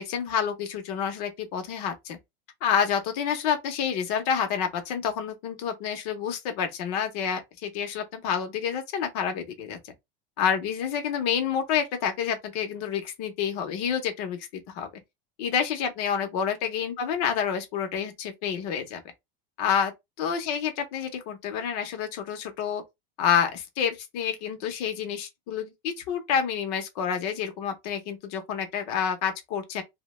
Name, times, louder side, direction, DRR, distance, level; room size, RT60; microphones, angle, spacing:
voice 1, 0.0-2.2 2.6-9.8 10.4-14.9 15.4-19.0 19.6-19.9 20.2-22.8 23.2-29.8, left 7 dB, 45° left, 0.7 m, -28 dB
2.7 x 2.1 x 2.9 m
supercardioid pair, 180°, 29 cm